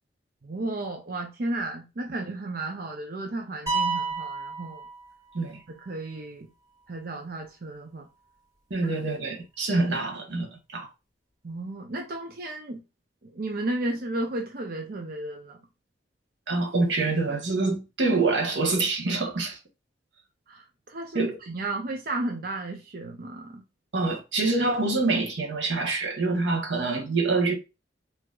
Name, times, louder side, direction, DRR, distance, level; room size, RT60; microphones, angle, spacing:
voice 1, 0.4-4.8 5.9-6.5 6.9-8.1 11.4-12.8 13.2-15.6 20.5-23.6, right 2 dB, 55° right, 0.6 m, -33 dB
sound 1, 3.7-5.6, right 3 dB, 15° right, 1.9 m, -30 dB
voice 2, 8.7-10.9 16.5-19.6 21.1-21.4 23.9-27.5, right 3 dB, 80° right, 1.2 m, -26 dB
4.5 x 2.8 x 2.4 m
head